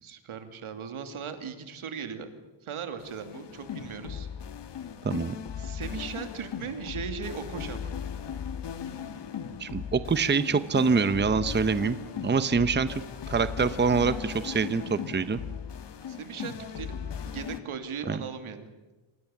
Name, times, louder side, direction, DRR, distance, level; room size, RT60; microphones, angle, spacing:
voice 1, 0.0-2.3 2.6-4.3 5.6-7.9 16.1-18.7, right 6 dB, 85° right, 8 dB, 3.0 m, -38 dB
sound 1, 3.0-17.6, left 7 dB, 60° left, 1.7 m, -38 dB
voice 2, 5.0-5.3 9.6-12.0 12.2-13.0 13.3-15.4 18.1-18.2, right 5 dB, 20° right, 12 dB, 0.9 m, -25 dB
28.5 x 25.5 x 7.3 m, 1.1 s
wide cardioid pair, 160°, 48 cm